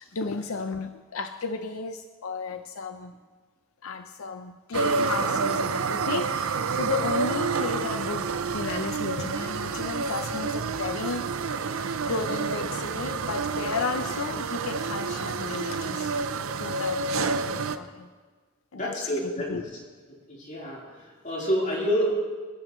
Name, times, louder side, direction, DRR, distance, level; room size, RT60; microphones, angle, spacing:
voice 1, 0.0-3.1 3.8-8.3 8.5-11.3 12.1-16.1 16.6-18.1 18.7-19.1 19.5-19.6, left 4 dB, 85° left, 8 dB, 0.6 m, -33 dB
sound 1, 4.7-17.8, right 4 dB, 80° right, 0.6 m, -29 dB
voice 2, 18.7-19.6 20.3-22.1, equal, 40° left, -4 dB, 3.9 m, -28 dB
24.5 x 11.0 x 3.1 m, 1.5 s
head